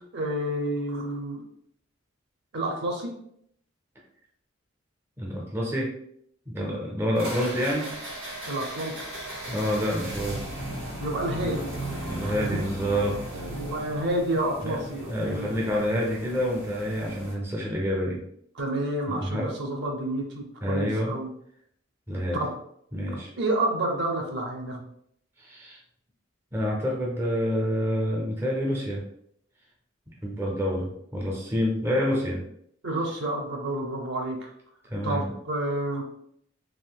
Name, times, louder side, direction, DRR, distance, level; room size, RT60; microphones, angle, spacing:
voice 1, 0.1-1.4 2.5-3.1 8.5-8.9 11.0-11.7 12.2-12.3 13.3-15.5 18.5-21.3 22.3-22.5 23.4-24.8 32.8-34.5 35.0-36.0, right 1 dB, 55° right, 1 dB, 0.6 m, -29 dB
voice 2, 5.2-6.0 6.5-7.9 9.4-10.5 11.3-11.6 12.0-13.2 14.6-14.8 15.1-18.2 19.1-19.5 20.6-21.2 22.1-22.4 22.9-23.3 25.4-25.8 26.5-29.0 30.2-32.4 34.9-35.3, equal, 10° right, -3 dB, 0.5 m, -28 dB
sound 1, 7.1-17.3, right 1 dB, 75° right, 1.4 m, -37 dB
3.6 x 2.5 x 2.2 m, 0.70 s
head